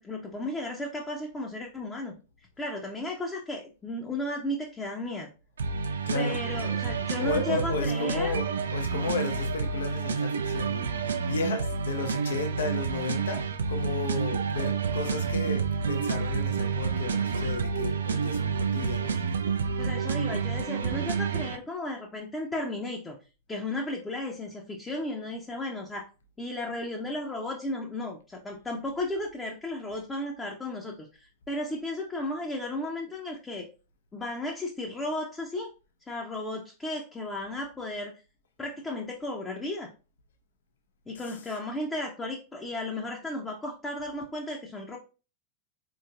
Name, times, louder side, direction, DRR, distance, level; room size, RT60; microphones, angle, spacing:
voice 1, 0.0-2.1 2.6-5.3 6.1-8.4 19.8-23.1 23.5-26.0 26.4-33.7 34.1-35.7 36.0-38.1 38.6-39.9 41.1-45.0, left 1 dB, 15° left, 0.6 m, -34 dB
sound 1, 5.6-21.6, right 5 dB, 65° right, 0.3 m, -29 dB
voice 2, 6.1-6.4 7.2-19.2 41.1-41.6, left 4 dB, 65° left, 0.5 m, -34 dB
4.2 x 3.1 x 2.4 m
figure-of-eight pair, 90°, 0 cm